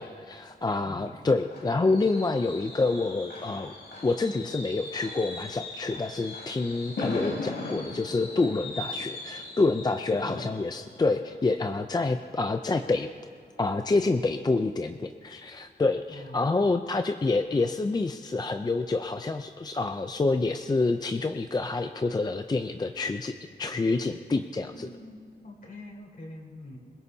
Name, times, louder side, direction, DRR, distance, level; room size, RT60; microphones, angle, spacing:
voice 1, 0.0-3.7 4.0-13.1 13.6-24.9, left 3 dB, 25° left, 7 dB, 0.5 m, -27 dB
Fireworks, 1.1-12.6 12.9-13.2 13.5-13.6, left 2 dB, 85° left, 3.3 m, -39 dB
voice 2, 10.2-10.5 16.1-16.6 24.7-26.8, left 2 dB, 55° left, -1 dB, 3.6 m, -44 dB
26.5 x 17.0 x 2.8 m, 2.3 s
wide cardioid pair, 125°, 18 cm